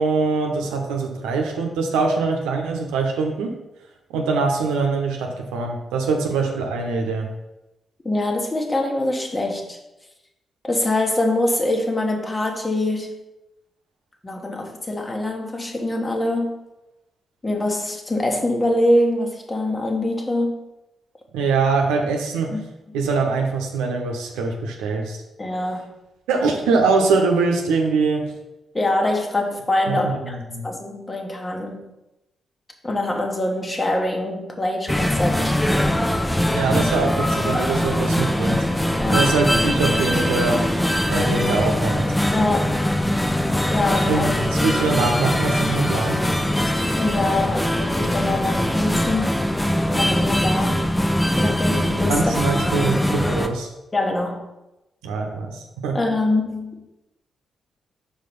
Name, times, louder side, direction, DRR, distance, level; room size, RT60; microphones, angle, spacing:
voice 1, 0.0-3.6 4.1-7.3 21.3-22.6 22.9-25.2 26.3-28.3 29.9-30.6 36.5-38.7 39.1-40.6 41.1-42.2 44.1-46.3 52.1-53.7 55.0-56.0, right 4 dB, 85° right, 2 dB, 0.8 m, -23 dB
voice 2, 8.0-9.8 10.6-13.2 14.2-16.6 17.4-20.7 22.5-22.6 25.4-26.0 28.7-30.4 30.6-31.9 32.8-35.6 39.0-39.3 42.3-42.9 43.7-44.3 47.0-49.4 49.9-50.9 51.4-52.3 53.9-54.5 55.9-56.8, left 1 dB, 30° left, 2 dB, 1.4 m, -24 dB
sound 1, 34.9-53.5, left 1 dB, 10° left, 0.7 m, -21 dB
4.8 x 4.6 x 5.3 m, 0.94 s
hypercardioid pair, 40°, 0 cm